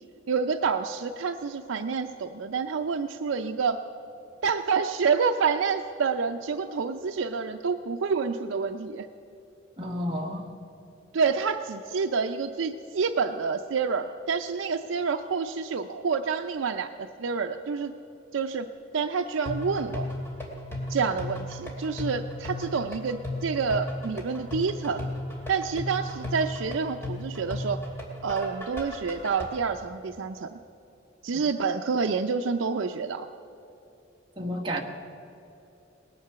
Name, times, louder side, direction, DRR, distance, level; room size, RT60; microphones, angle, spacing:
voice 1, 0.3-3.8 4.4-9.1 11.1-17.9 18.3-18.7 18.9-20.1 20.9-25.1 25.5-27.8 28.2-30.6 31.2-33.3, right 5 dB, 90° right, 6 dB, 0.5 m, -28 dB
voice 2, 9.8-10.5 34.4-34.8, equal, 25° right, 1 dB, 1.3 m, -31 dB
sound 1, 19.5-29.4, left 1 dB, 15° left, 2.4 m, -35 dB
19.0 x 9.7 x 6.8 m, 2.9 s
head